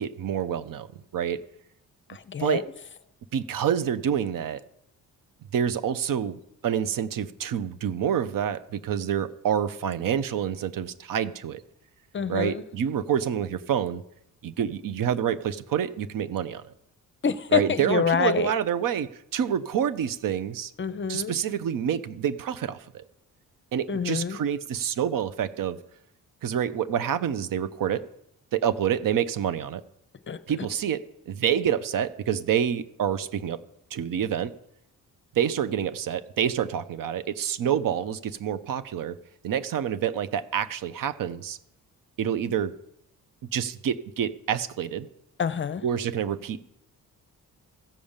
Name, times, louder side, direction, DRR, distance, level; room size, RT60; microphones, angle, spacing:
voice 1, 0.0-1.4 2.4-2.7 3.3-4.6 5.5-11.6 12.3-14.0 14.4-16.7 17.5-20.7 21.1-23.0 23.7-25.8 26.4-28.1 28.5-29.8 30.5-33.6 33.9-34.5 35.3-39.2 39.4-41.6 42.2-42.7 43.5-45.1 45.8-46.7, right 9 dB, 65° right, 0.8 m, -27 dB
voice 2, 2.1-2.6 12.1-12.6 17.2-18.5 20.8-21.4 23.9-24.4 30.3-30.4 45.4-45.8, left 6 dB, 35° left, 0.6 m, -26 dB
15.0 x 5.1 x 7.2 m
cardioid pair, 95°, 35 cm